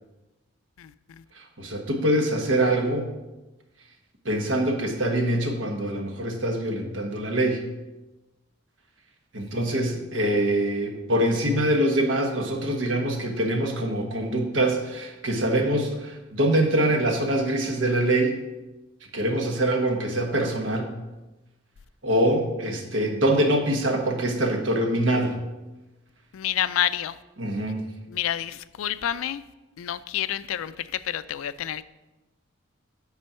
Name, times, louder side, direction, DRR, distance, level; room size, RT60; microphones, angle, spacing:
voice 1, 0.8-1.2 26.3-27.2 28.1-29.4 29.8-31.9, left 11 dB, 90° left, 16 dB, 0.4 m, -29 dB
voice 2, 1.3-3.1 4.2-7.6 9.3-18.4 19.1-20.9 22.0-25.4 27.4-27.8, right 1 dB, 65° right, 3 dB, 1.3 m, -24 dB
8.3 x 4.4 x 5.6 m, 1.1 s
head